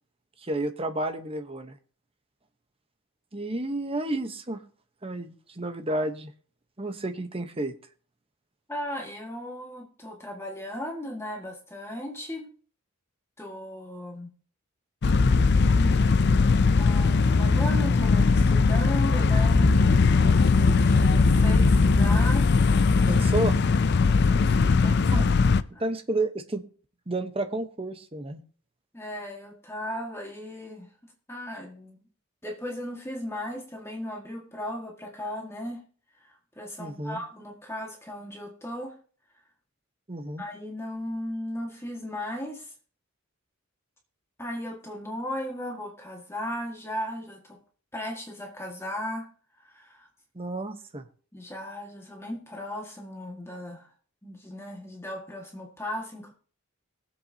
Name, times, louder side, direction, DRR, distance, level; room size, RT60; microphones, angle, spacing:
voice 1, 0.4-1.7 3.3-4.6 5.0-6.3 6.8-7.7 23.1-23.6 25.1-25.3 25.8-26.6 27.1-28.4 36.8-37.2 40.1-40.4 50.3-51.1, right 2 dB, 25° right, 7 dB, 1.0 m, -31 dB
voice 2, 8.7-12.5 13.4-14.3 16.7-22.5 24.0-25.1 25.7-25.9 28.9-30.9 31.3-32.0 32.4-35.8 36.2-36.3 36.6-39.0 40.4-42.7 44.4-47.6 47.9-49.3 49.6-50.1 51.3-53.9 54.2-56.3, left 1 dB, 10° left, 1 dB, 1.8 m, -36 dB
sound 1, 15.0-25.6, left 4 dB, 50° left, 0.5 m, -20 dB
22.0 x 7.9 x 2.8 m, 0.43 s
head